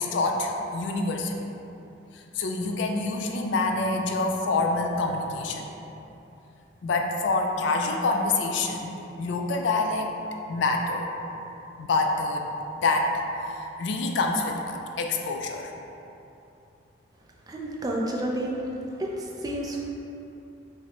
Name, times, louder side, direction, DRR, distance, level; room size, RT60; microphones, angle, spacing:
voice 1, 0.0-1.5 2.1-5.7 6.8-10.1 10.5-11.1 11.8-12.5 12.8-13.1 13.4-15.7, left 3 dB, 65° left, 3 dB, 0.3 m, -26 dB
voice 2, 17.5-18.7 19.0-19.8, right 1 dB, 20° right, -2 dB, 0.3 m, -30 dB
5.6 x 2.1 x 2.9 m, 2.9 s
head